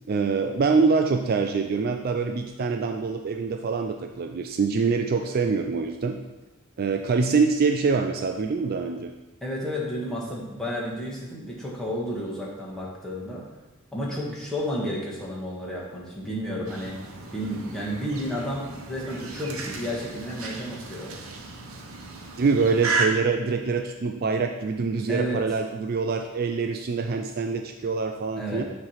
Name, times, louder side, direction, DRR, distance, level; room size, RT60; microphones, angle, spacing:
voice 1, 0.1-6.2 6.8-9.1 22.4-28.6, right 4 dB, 45° right, 4 dB, 0.3 m, -25 dB
voice 2, 9.4-13.4 13.9-16.9 17.3-21.1 25.1-25.4 28.4-28.6, equal, 5° left, -5 dB, 1.4 m, -31 dB
sound 1, 16.7-23.1, right 4 dB, 70° right, 0.9 m, -34 dB
7.2 x 3.2 x 5.6 m, 1.1 s
head